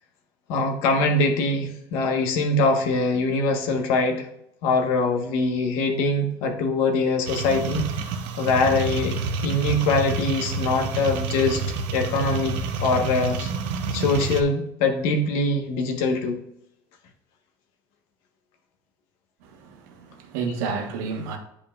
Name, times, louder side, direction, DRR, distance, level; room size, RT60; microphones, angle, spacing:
voice 1, 0.5-4.2 4.6-7.8 8.4-9.1 9.4-11.6 11.9-12.5 12.8-13.5 13.9-16.4, left 3 dB, 70° left, 1.4 m, -23 dB
sound 1, 7.3-14.4, right 4 dB, 70° right, 0.9 m, -28 dB
voice 2, 19.6-21.4, right 5 dB, 90° right, 1.4 m, -30 dB
10.0 x 5.3 x 2.5 m
cardioid pair, 145°, 10 cm